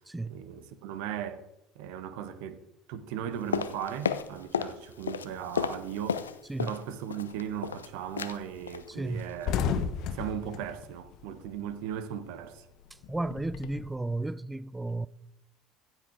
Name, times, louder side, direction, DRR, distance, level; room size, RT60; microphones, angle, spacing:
voice 1, 0.3-1.4 1.7-2.6 2.9-6.3 6.6-9.6 10.1-12.7, right 9 dB, 65° right, 1.2 m, -37 dB
sound 1, 3.5-4.8 5.0-6.8 7.1-7.9 8.2-8.4 8.7-8.9 9.2-9.5 9.7-9.8, left 7 dB, 85° left, 0.6 m, -32 dB
sound 2, 7.3-7.7 8.1-8.2 8.5-8.6 8.9-11.9 12.2-13.9, left 7 dB, 60° left, 1.2 m, -33 dB
voice 2, 8.9-9.3 13.1-15.1, right 2 dB, 10° right, 0.5 m, -33 dB
15.0 x 8.0 x 4.7 m
hypercardioid pair, 65°, 0 cm